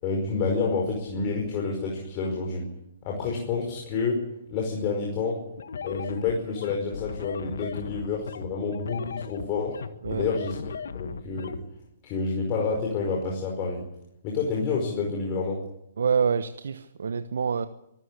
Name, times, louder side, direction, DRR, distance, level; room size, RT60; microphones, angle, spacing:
voice 1, 0.0-2.6 3.0-4.2 4.5-5.4 5.8-9.8 10.1-10.6 10.9-11.6 12.0-13.8 14.2-15.6, left 4 dB, 35° left, 0 dB, 5.3 m, -28 dB
sound 1, 5.6-11.6, left 6 dB, 70° left, 1.6 m, -37 dB
voice 2, 16.0-17.7, right 6 dB, 70° right, 11 dB, 1.1 m, -26 dB
24.0 x 14.0 x 8.5 m, 0.84 s
hypercardioid pair, 130°, 0 cm